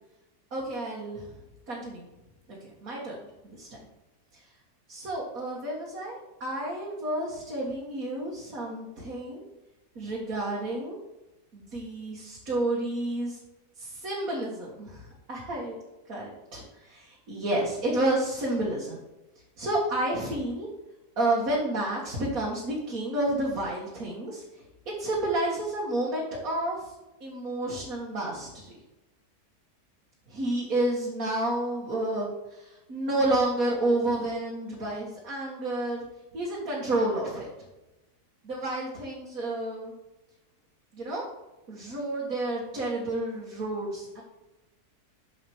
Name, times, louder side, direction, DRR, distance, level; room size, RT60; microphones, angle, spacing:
voice 1, 0.5-1.3 1.7-2.1 2.5-3.2 3.4-3.8 4.3-4.4 4.9-9.4 10.0-11.0 11.5-13.4 13.8-15.8 16.1-19.0 19.6-20.7 21.2-24.6 25.0-26.9 27.2-28.7 30.3-36.0 36.3-37.5 38.4-39.9 40.9-41.2 41.7-44.2, right 1 dB, 60° right, -5 dB, 2.2 m, -30 dB
8.1 x 7.2 x 4.5 m, 1.0 s
omnidirectional pair, 1.7 m